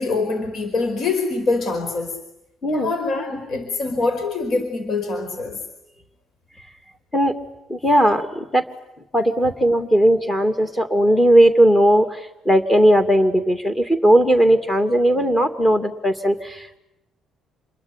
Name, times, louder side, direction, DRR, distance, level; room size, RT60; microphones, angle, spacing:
voice 1, 0.0-2.1 2.7-5.6, left 3 dB, 50° left, 7 dB, 4.8 m, -24 dB
voice 2, 2.6-2.9 7.1-7.3 7.7-8.6 9.1-16.8, right 1 dB, 15° left, 6 dB, 2.6 m, -17 dB
28.0 x 22.0 x 9.7 m, 0.86 s
cardioid pair, 135°, 0 cm